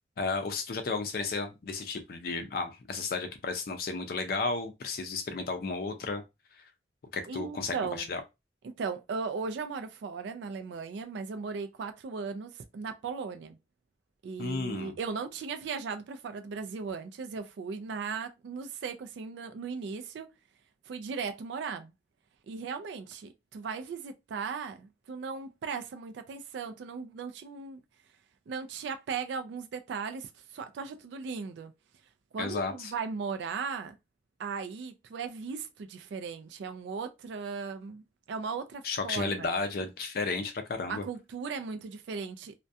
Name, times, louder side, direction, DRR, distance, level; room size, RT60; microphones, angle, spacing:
voice 1, 0.2-6.2 6.5-6.6 7.1-8.2 14.4-15.0 32.4-32.9 38.8-41.0, left 4 dB, 55° left, 0.4 m, -33 dB
voice 2, 7.3-8.1 8.6-13.6 14.2-20.3 20.9-21.9 22.5-27.8 28.5-31.7 32.3-33.9 34.4-39.5 40.9-42.5, right 5 dB, 75° right, 0.3 m, -37 dB
2.3 x 2.1 x 2.6 m
head